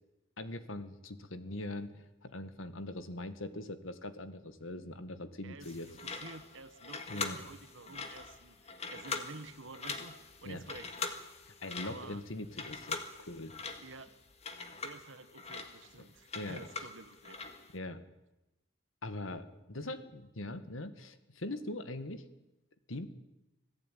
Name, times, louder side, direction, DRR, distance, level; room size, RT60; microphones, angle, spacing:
voice 1, 0.4-5.9 7.1-7.4 10.4-10.6 11.6-13.5 16.3-16.6 17.7-18.0 19.0-22.3 22.9-23.1, left 1 dB, 90° left, 11 dB, 1.9 m, -42 dB
voice 2, 5.4-11.2 11.8-12.2 13.8-14.2 14.7-17.4, right 3 dB, 80° right, 13 dB, 1.4 m, -50 dB
sound 1, 5.6-17.7, left 4 dB, 30° left, 1.9 m, -43 dB
25.5 x 16.5 x 9.3 m, 0.99 s
head